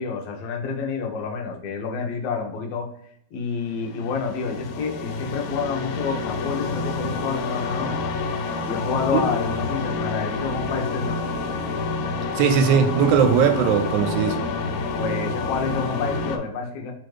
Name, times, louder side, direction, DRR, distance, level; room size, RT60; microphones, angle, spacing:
voice 1, 0.0-2.9 3.3-8.0 8.6-11.3 15.0-16.9, left 5 dB, 70° left, 1 dB, 1.6 m, -28 dB
sound 1, 3.7-16.4, left 3 dB, 90° left, 2.0 m, -28 dB
voice 2, 12.4-14.5, right 7 dB, 90° right, 6 dB, 2.0 m, -19 dB
4.5 x 2.5 x 4.6 m, 0.70 s
omnidirectional pair, 3.3 m